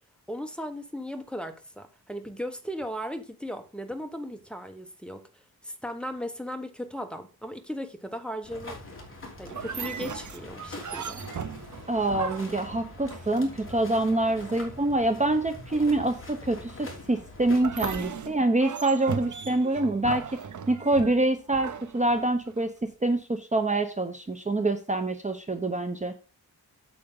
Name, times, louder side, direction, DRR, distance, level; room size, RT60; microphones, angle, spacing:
voice 1, 0.3-5.2 5.6-8.8 9.4-11.2, equal, 5° left, 1.1 m, -37 dB
sound 1, 8.4-17.6, left 2 dB, 35° left, 3.6 m, -44 dB
sound 2, 9.5-13.8 17.5-22.6, right 6 dB, 50° right, 0.9 m, -37 dB
voice 2, 11.9-20.4 20.7-26.1, right 2 dB, 20° right, 0.9 m, -26 dB
8.9 x 7.6 x 3.8 m
wide cardioid pair, 125°, 38 cm